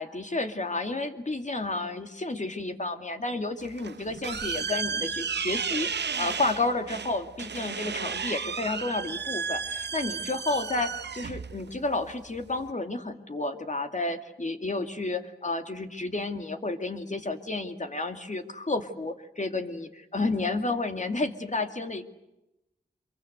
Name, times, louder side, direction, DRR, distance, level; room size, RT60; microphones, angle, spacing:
voice 1, 0.0-22.0, left 2 dB, 45° left, 6 dB, 2.5 m, -31 dB
sound 1, 3.6-12.7, right 6 dB, 90° right, 0.8 m, -33 dB
26.0 x 23.0 x 8.0 m, 0.93 s
wide cardioid pair, 65°, 17 cm